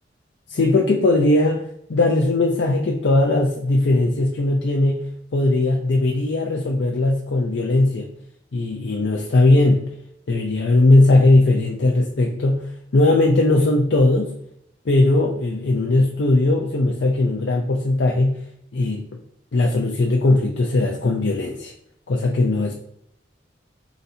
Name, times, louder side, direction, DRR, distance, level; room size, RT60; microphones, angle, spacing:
voice 1, 0.5-8.1 8.5-9.9 10.3-14.4 14.9-18.4 18.7-19.2 19.5-21.7 22.1-22.7, left 2 dB, 70° left, 1 dB, 0.5 m, -19 dB
4.0 x 2.7 x 4.0 m, 0.74 s
head